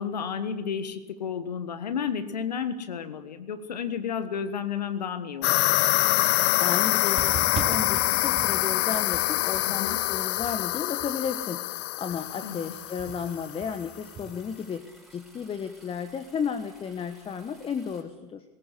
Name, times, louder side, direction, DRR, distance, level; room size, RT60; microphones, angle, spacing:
voice 1, 0.0-5.5 9.7-10.0 12.4-12.6, left 7 dB, 75° left, 11 dB, 1.4 m, -32 dB
sound 1, 5.4-13.6, left 19 dB, 50° left, 0.8 m, -25 dB
voice 2, 6.6-14.8 15.1-18.4, left 6 dB, 25° left, 10 dB, 1.3 m, -33 dB
sound 2, 7.2-11.4 11.8-14.7, right 9 dB, 30° right, 1.0 m, -41 dB
sound 3, 12.1-18.0, equal, ahead, 5.5 m, -56 dB
20.0 x 18.0 x 8.2 m, 1.0 s
figure-of-eight pair, 75°, 21 cm